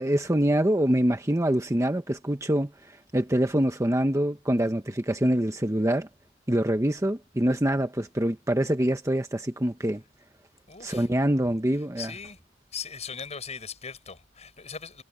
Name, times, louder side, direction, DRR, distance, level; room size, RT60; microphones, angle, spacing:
voice 1, 0.0-6.1 6.5-10.0 10.8-12.1, right 1 dB, 15° right, 1.0 m, -25 dB
voice 2, 10.7-11.1 12.0-12.4 12.7-15.0, left 6 dB, 35° left, 6.4 m, -39 dB
head